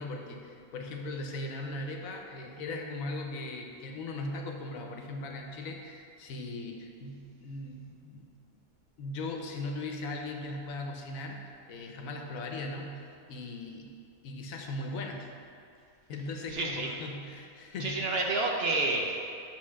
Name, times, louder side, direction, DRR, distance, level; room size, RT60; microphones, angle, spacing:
voice 1, 0.0-8.3 9.0-13.9 14.2-15.3 16.1-18.1, left 2 dB, 75° left, 3 dB, 1.1 m, -39 dB
voice 2, 16.5-16.9 17.8-19.3, right 2 dB, 55° right, 0 dB, 0.8 m, -29 dB
7.8 x 3.6 x 6.2 m, 2.5 s
omnidirectional pair, 1.5 m